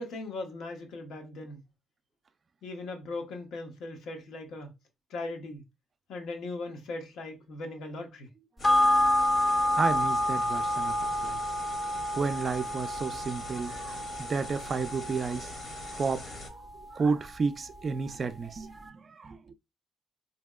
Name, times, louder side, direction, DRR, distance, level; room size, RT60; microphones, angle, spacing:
voice 1, 0.0-1.6 2.6-4.7 5.1-5.6 6.1-8.3, left 2 dB, 80° left, 0.7 m, -39 dB
sound 1, 8.6-16.5, left 2 dB, 50° left, 0.8 m, -43 dB
sound 2, 8.6-17.4 17.7-17.8, left 1 dB, 20° left, 0.5 m, -29 dB
voice 2, 9.8-11.4 12.1-15.5 15.9-16.6 16.9-19.5, right 4 dB, 40° right, 0.3 m, -32 dB
2.8 x 2.7 x 2.2 m
cardioid pair, 90°, 0 cm